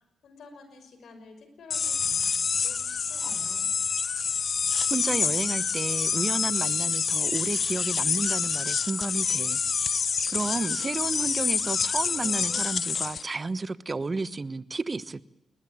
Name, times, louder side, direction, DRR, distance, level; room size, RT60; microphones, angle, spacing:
voice 1, 0.0-3.7, left 3 dB, 75° left, 8 dB, 5.8 m, -50 dB
sound 1, 1.7-13.2, left 6 dB, 55° left, 0.8 m, -27 dB
voice 2, 4.9-9.6 9.9-15.2, right 3 dB, 35° right, 17 dB, 1.1 m, -32 dB
20.5 x 20.5 x 8.8 m, 0.94 s
supercardioid pair, 55°, 0 cm